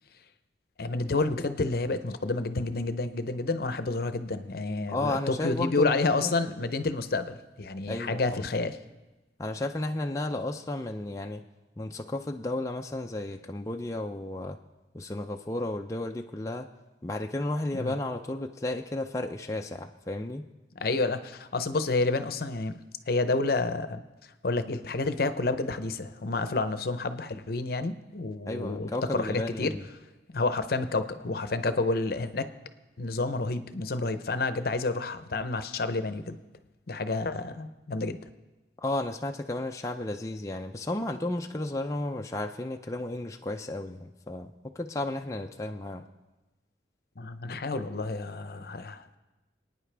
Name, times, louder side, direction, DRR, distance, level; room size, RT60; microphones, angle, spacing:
voice 1, 0.8-8.8 17.7-17.9 20.8-24.0 24.4-29.8 30.3-32.5 33.0-36.4 36.9-38.2 47.2-49.0, left 3 dB, 55° left, 11 dB, 0.7 m, -29 dB
voice 2, 4.9-6.4 7.9-8.4 9.4-11.4 11.8-14.6 14.9-16.7 17.0-20.5 28.5-29.8 38.8-46.1, left 2 dB, 15° left, 3 dB, 0.4 m, -33 dB
27.0 x 9.5 x 3.4 m, 1.1 s
head